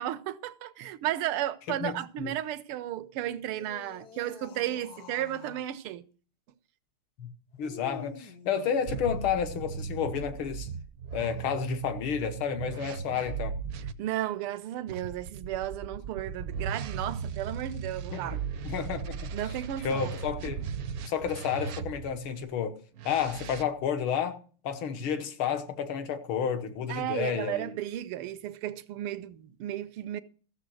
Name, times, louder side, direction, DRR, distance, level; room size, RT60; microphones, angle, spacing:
voice 1, 0.0-6.0 14.0-18.4 19.3-20.1 26.9-30.2, right 12 dB, 85° right, 1.7 m, -34 dB
voice 2, 1.8-2.3 7.2-7.3 7.6-10.7 11.1-13.6 18.1-19.3 19.8-20.6 21.0-22.8 23.0-27.7, left 8 dB, 75° left, 2.0 m, -31 dB
sound 1, 3.4-5.7 7.6-9.4 11.0-11.5, left 6 dB, 55° left, 1.3 m, -48 dB
sound 2, 8.9-13.9 14.9-22.2 23.0-23.6, right 6 dB, 65° right, 0.9 m, -37 dB
14.5 x 6.9 x 6.2 m
omnidirectional pair, 2.4 m